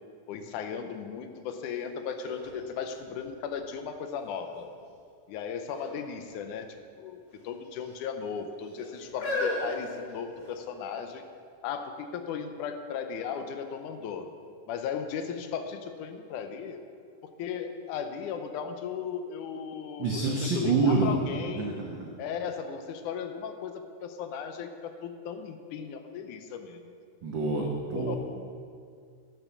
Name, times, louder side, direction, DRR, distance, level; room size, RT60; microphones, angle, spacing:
voice 1, 0.3-4.7 5.3-6.7 6.9-11.2 11.6-14.3 14.7-16.8 17.4-21.8 22.2-26.9 27.9-28.2, left 7 dB, 80° left, 7 dB, 2.2 m, -36 dB
sound 1, 1.6-1.7 2.2-3.7 4.3-4.8 5.6-6.0 6.3-6.4 7.3-7.9 8.6-10.7 11.4-11.5, left 2 dB, 55° left, 3.6 m, -36 dB
voice 2, 20.0-21.2 21.6-22.1 27.2-28.2, right 3 dB, 90° right, -1 dB, 1.0 m, -27 dB
11.5 x 7.0 x 6.9 m, 2.3 s
omnidirectional pair, 3.6 m